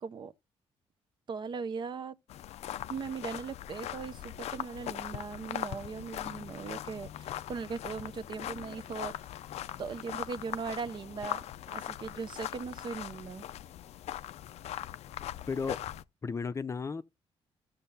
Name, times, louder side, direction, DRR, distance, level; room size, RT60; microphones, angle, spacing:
voice 1, 0.0-0.3 1.3-2.2 2.9-9.1 9.8-11.4 11.7-13.4, right 5 dB, 45° right, 0.5 m, -39 dB
sound 1, 2.3-16.0, left 12 dB, 75° left, 0.4 m, -40 dB
voice 2, 15.5-15.8 16.2-17.0, left 5 dB, 25° left, 0.5 m, -34 dB
15.0 x 6.6 x 2.7 m
cardioid pair, 120°, 11 cm